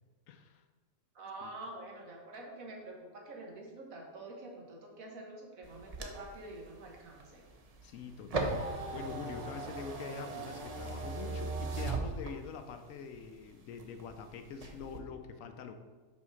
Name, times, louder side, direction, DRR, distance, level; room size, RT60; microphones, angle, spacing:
voice 1, 0.3-0.6 1.4-1.5 7.8-15.7, left 6 dB, 80° left, 7 dB, 1.0 m, -45 dB
voice 2, 1.1-7.4, right 2 dB, 85° right, 0 dB, 1.6 m, -47 dB
sound 1, 5.6-12.7 13.2-14.2 14.5-15.0, right 3 dB, 35° right, 0.6 m, -38 dB
5.7 x 4.2 x 6.2 m, 1.4 s
omnidirectional pair, 1.4 m